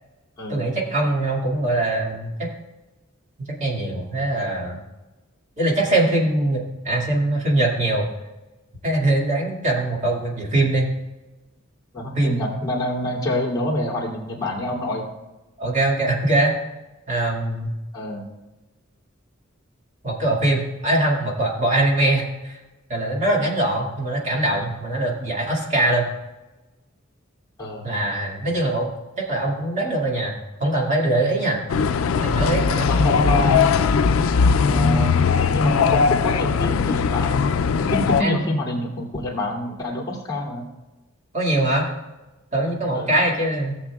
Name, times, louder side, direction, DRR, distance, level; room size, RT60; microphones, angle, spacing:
voice 1, 0.5-2.5 3.4-4.8 5.6-8.1 8.8-10.9 12.2-12.5 15.6-16.5 17.1-17.7 20.0-22.6 22.9-26.1 27.8-28.9 29.2-30.3 30.6-31.7 32.2-32.9 38.2-38.4 41.3-41.9 42.5-43.8, right 1 dB, 35° right, -2 dB, 2.1 m, -22 dB
voice 2, 11.9-15.1 17.9-18.3 27.6-27.9 32.9-33.6 34.6-35.2 35.5-37.4 37.8-40.7 42.9-43.1, left 1 dB, 20° left, -6 dB, 2.7 m, -26 dB
sound 1, 31.7-38.2, left 5 dB, 90° left, 0.4 m, -19 dB
18.0 x 7.1 x 2.3 m, 1.1 s
head